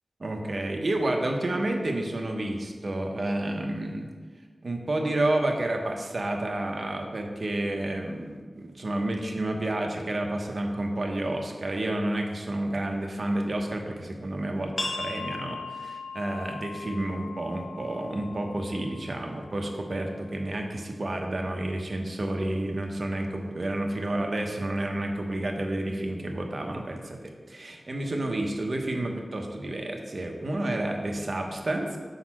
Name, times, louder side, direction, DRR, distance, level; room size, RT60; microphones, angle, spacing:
voice 1, 0.2-4.1 4.6-14.7 15.0-32.0, right 1 dB, 55° right, 2 dB, 0.9 m, -30 dB
sound 1, 14.8-20.1, left 3 dB, 55° left, 1.2 m, -39 dB
5.3 x 4.0 x 6.0 m, 1.5 s
wide cardioid pair, 70°, 0 cm